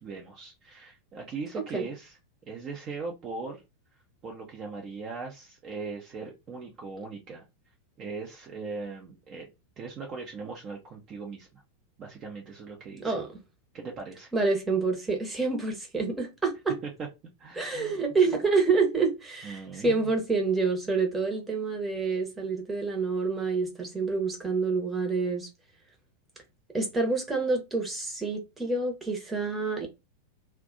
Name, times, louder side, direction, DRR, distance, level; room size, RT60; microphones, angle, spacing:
voice 1, 0.0-3.6 4.2-7.4 8.0-9.5 9.8-11.6 12.0-13.2 13.7-14.3 16.8-16.9 17.4-18.0 19.4-20.1, right 4 dB, 30° right, 0.7 m, -39 dB
voice 2, 14.3-16.8 17.6-25.5 26.7-29.9, right 4 dB, 10° right, 1.0 m, -27 dB
2.5 x 2.2 x 3.8 m
figure-of-eight pair, 90°, 0 cm